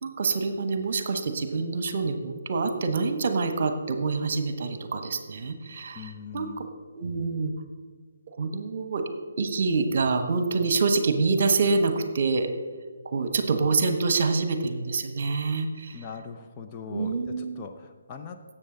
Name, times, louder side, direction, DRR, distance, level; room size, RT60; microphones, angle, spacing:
voice 1, 0.0-6.7 7.0-7.5 8.4-9.0 9.4-12.5 13.0-16.0 16.9-17.6, right 4 dB, 45° right, 8 dB, 1.2 m, -26 dB
voice 2, 5.9-6.7 15.9-18.4, left 6 dB, 25° left, 3 dB, 0.7 m, -41 dB
17.5 x 7.8 x 3.9 m, 1.5 s
figure-of-eight pair, 145°, 0 cm